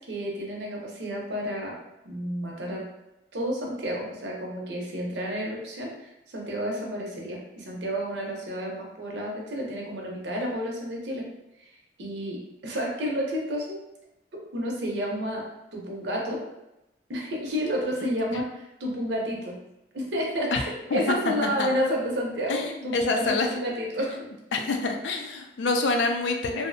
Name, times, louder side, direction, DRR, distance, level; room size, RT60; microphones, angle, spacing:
voice 1, 0.1-1.8 2.0-2.8 3.3-11.2 12.0-13.8 14.5-15.4 15.7-16.4 17.1-19.5 19.9-24.2, equal, 80° right, -1 dB, 0.6 m, -30 dB
voice 2, 18.0-18.4 20.5-20.6 20.9-21.7 22.5-23.5 24.5-26.7, left 3 dB, 85° left, 4 dB, 0.4 m, -27 dB
2.6 x 2.0 x 2.5 m, 0.91 s
head